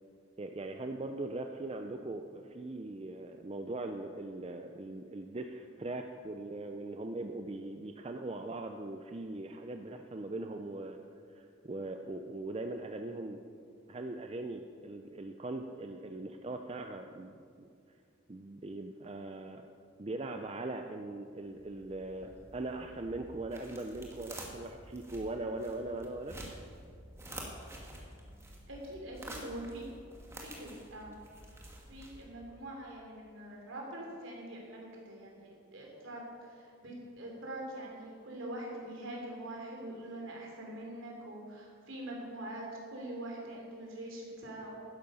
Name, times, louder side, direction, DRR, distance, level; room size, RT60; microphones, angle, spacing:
voice 1, 0.4-11.0 11.3-13.4 13.9-17.7 18.3-19.6 20.0-26.4, right 2 dB, 30° right, 5 dB, 0.4 m, -40 dB
sound 1, 21.5-32.5, right 1 dB, 10° right, 1.5 m, -49 dB
voice 2, 28.7-29.8 30.6-31.1 31.9-44.8, right 1 dB, 65° right, -1 dB, 3.1 m, -44 dB
12.0 x 10.5 x 5.5 m, 2.3 s
head